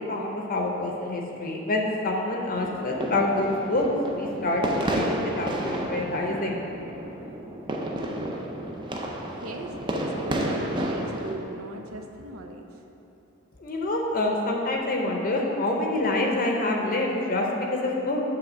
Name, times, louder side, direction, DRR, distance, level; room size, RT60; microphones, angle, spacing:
voice 1, 0.0-6.7 13.6-18.2, left 2 dB, 45° left, 0 dB, 0.6 m, -27 dB
sound 1, 2.5-11.3, right 1 dB, 25° right, 0.5 m, -31 dB
voice 2, 9.4-12.7, right 2 dB, 85° right, 4 dB, 0.6 m, -39 dB
7.8 x 3.4 x 6.1 m, 3.0 s
head